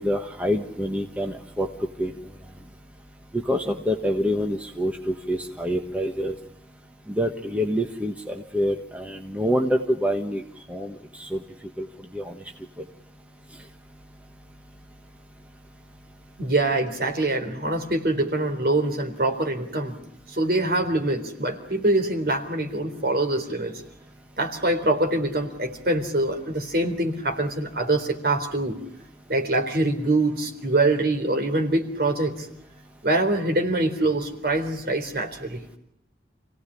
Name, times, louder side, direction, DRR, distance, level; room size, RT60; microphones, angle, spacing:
voice 1, 0.0-1.7 2.0-2.1 3.3-6.3 7.1-10.4 10.7-11.4 11.8-11.9 12.1-12.3, equal, 10° right, 3 dB, 1.3 m, -26 dB
voice 2, 16.4-20.0 20.3-23.8 24.4-28.8 29.3-32.5 33.0-35.6, right 2 dB, 55° right, 2 dB, 3.9 m, -24 dB
27.5 x 17.5 x 9.9 m, 0.78 s
head